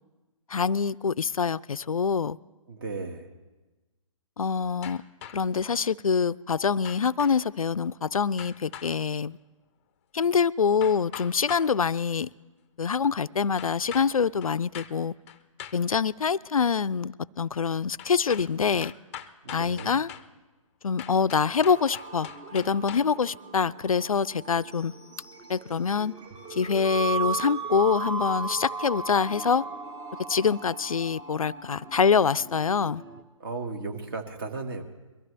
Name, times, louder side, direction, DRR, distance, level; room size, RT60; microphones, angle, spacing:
voice 1, 0.5-2.4 4.4-5.0 5.3-9.4 10.1-12.3 12.8-15.1 15.7-18.9 19.5-20.1 20.8-24.9 25.5-26.1 26.5-29.7 30.3-33.0, left 6 dB, 90° left, 18 dB, 0.4 m, -25 dB
voice 2, 2.7-3.3 19.4-20.0 33.4-34.8, right 3 dB, 40° right, 5 dB, 1.7 m, -35 dB
sound 1, 4.8-5.6 6.8-7.4 8.4-8.9 10.8-11.7 13.6-14.1 14.4-14.9 15.3-15.8 18.0-18.5 18.8-20.3 21.0-23.2, left 9 dB, 25° left, 0.5 m, -42 dB
sound 2, 21.6-33.2, right 5 dB, 20° right, 0.9 m, -37 dB
22.5 x 14.0 x 3.3 m, 1.2 s
figure-of-eight pair, 145°, 17 cm